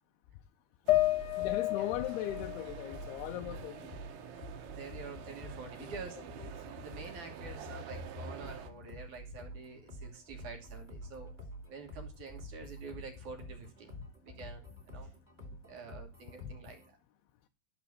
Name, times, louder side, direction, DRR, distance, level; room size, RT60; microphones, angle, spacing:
sound 1, 0.9-4.3 4.7-5.7, left 16 dB, 65° left, 2.3 m, -34 dB
sound 2, 0.9-16.9, equal, 15° right, 2.0 m, -48 dB
sound 3, 0.9-8.7, right 9 dB, 80° right, 3.0 m, -48 dB
voice 1, 1.4-3.8 5.6-5.9 6.4-6.5, left 13 dB, 85° left, 2.6 m, -39 dB
voice 2, 4.8-6.2 6.8-11.3 11.7-15.1 15.7-17.0, right 4 dB, 55° right, 2.7 m, -48 dB
12.0 x 4.3 x 6.9 m
omnidirectional pair, 4.6 m